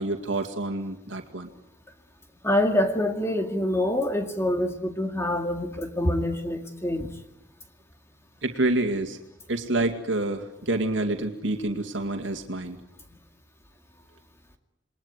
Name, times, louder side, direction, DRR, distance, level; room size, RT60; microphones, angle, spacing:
voice 1, 0.0-1.5 8.4-9.2 9.5-12.8, right 2 dB, 80° right, 5 dB, 2.3 m, -27 dB
voice 2, 2.4-7.1, left 1 dB, 15° left, 5 dB, 2.1 m, -26 dB
28.5 x 21.5 x 9.6 m, 0.85 s
head